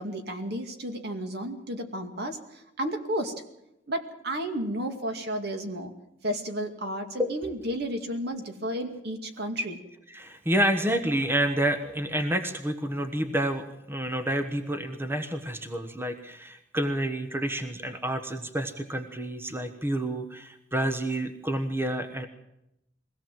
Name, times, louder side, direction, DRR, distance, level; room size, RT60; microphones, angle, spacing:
voice 1, 0.0-3.3 3.9-5.9 6.2-9.8, equal, 60° right, 5 dB, 2.3 m, -32 dB
voice 2, 10.1-22.3, right 1 dB, 10° right, 7 dB, 1.2 m, -29 dB
22.5 x 17.0 x 7.6 m, 0.84 s
head